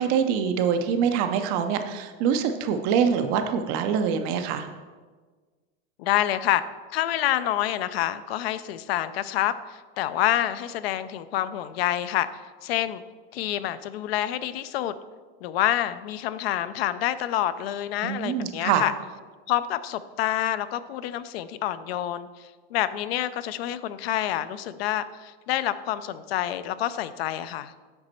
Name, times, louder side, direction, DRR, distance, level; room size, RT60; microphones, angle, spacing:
voice 1, 0.0-4.7 18.0-18.8, right 7 dB, 30° right, 7 dB, 0.4 m, -24 dB
voice 2, 6.0-6.6 6.9-12.3 12.6-13.0 13.3-15.0 15.4-18.9 19.5-27.7, left 12 dB, 70° left, 14 dB, 0.5 m, -27 dB
7.9 x 5.1 x 4.3 m, 1.4 s
supercardioid pair, 160°, 31 cm